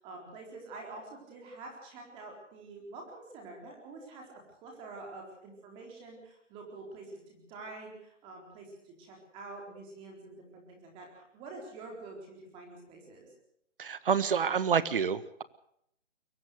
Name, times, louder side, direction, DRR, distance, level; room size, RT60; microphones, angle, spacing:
voice 1, 0.0-13.3, right 3 dB, 15° right, 1 dB, 4.1 m, -47 dB
voice 2, 13.8-15.4, right 7 dB, 45° right, 15 dB, 1.5 m, -28 dB
23.0 x 18.5 x 6.6 m, 0.74 s
hypercardioid pair, 160°, 36 cm